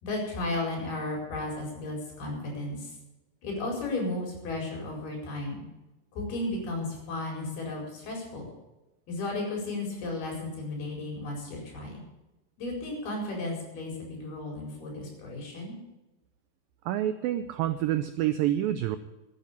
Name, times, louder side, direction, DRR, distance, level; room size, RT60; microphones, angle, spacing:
voice 1, 0.0-2.9 3.4-5.6 6.1-8.5 9.1-12.0 12.6-15.8, left 2 dB, 65° left, 0 dB, 6.7 m, -34 dB
voice 2, 16.9-19.0, right 12 dB, 90° right, 10 dB, 2.0 m, -27 dB
13.5 x 9.4 x 8.5 m, 1.0 s
omnidirectional pair, 4.9 m